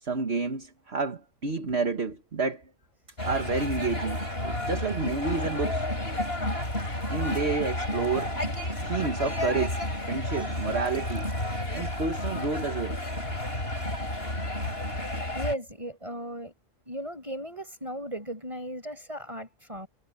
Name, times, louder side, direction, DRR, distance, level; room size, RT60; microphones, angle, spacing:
voice 1, 0.0-2.7 3.2-5.9 7.1-8.5 8.8-11.3 11.7-13.0, right 4 dB, 55° right, 1.9 m, -30 dB
sound 1, 3.2-15.5, left 1 dB, 50° left, 7.9 m, -31 dB
voice 2, 15.3-16.5 16.9-19.9, equal, 25° right, 5.6 m, -36 dB
omnidirectional pair, 1.3 m